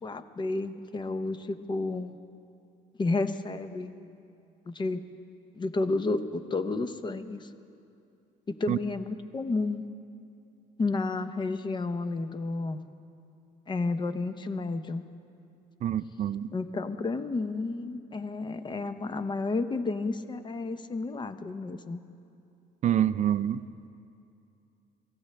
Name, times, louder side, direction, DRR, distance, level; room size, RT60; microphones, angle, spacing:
voice 1, 0.0-2.2 3.0-3.9 4.7-5.0 5.5-7.5 8.5-9.9 10.8-12.8 13.7-15.0 16.5-22.0, left 3 dB, 25° left, 0.7 m, -31 dB
voice 2, 15.8-16.5 22.8-23.9, right 10 dB, 45° right, 0.4 m, -27 dB
24.5 x 15.0 x 3.3 m
cardioid pair, 110°, 17 cm